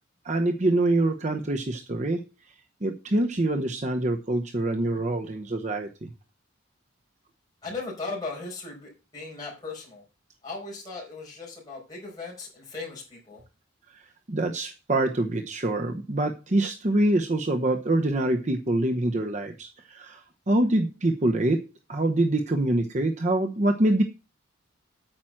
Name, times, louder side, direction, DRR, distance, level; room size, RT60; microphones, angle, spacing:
voice 1, 0.2-2.3 2.8-6.1 13.9-21.6 21.9-24.0, right 1 dB, 35° right, 5 dB, 0.8 m, -25 dB
voice 2, 7.6-10.0 10.4-13.4, left 3 dB, 20° left, -5 dB, 4.9 m, -37 dB
8.9 x 5.9 x 7.5 m, 0.29 s
head